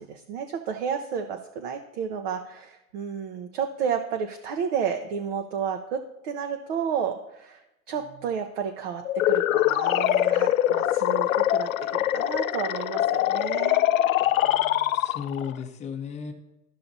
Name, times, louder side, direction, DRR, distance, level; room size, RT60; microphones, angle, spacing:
voice 1, 0.0-7.6 7.9-13.8, right 7 dB, 40° right, 5 dB, 0.7 m, -31 dB
sound 1, 9.0-15.5, left 13 dB, 60° left, 0.5 m, -23 dB
voice 2, 14.3-16.3, left 7 dB, 15° left, 4 dB, 0.8 m, -36 dB
13.0 x 5.7 x 2.7 m, 0.91 s
hypercardioid pair, 115°, 47 cm